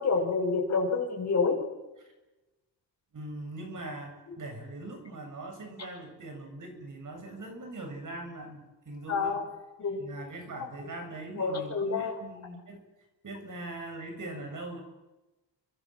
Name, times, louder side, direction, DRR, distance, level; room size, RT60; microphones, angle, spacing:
voice 1, 0.0-1.6 9.1-9.5 9.8-10.0 11.3-12.1, left 4 dB, 40° left, 1 dB, 7.4 m, -28 dB
voice 2, 3.1-9.4 10.0-12.8 13.2-14.8, right 2 dB, 45° right, 5 dB, 7.4 m, -41 dB
30.0 x 25.5 x 7.6 m, 1.1 s
wide cardioid pair, 165°, 42 cm